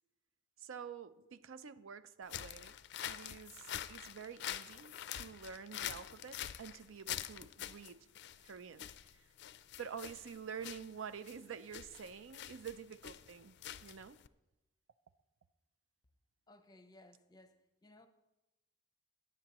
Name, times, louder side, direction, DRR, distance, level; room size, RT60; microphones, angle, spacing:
voice 1, 0.6-2.7 3.1-8.0 8.4-8.9 9.8-14.2, right 7 dB, 70° right, 0.4 m, -48 dB
sound 1, 2.2-14.3, left 11 dB, 55° left, 0.4 m, -46 dB
voice 2, 16.5-18.1, left 1 dB, 20° left, 0.7 m, -61 dB
17.0 x 10.5 x 3.0 m
head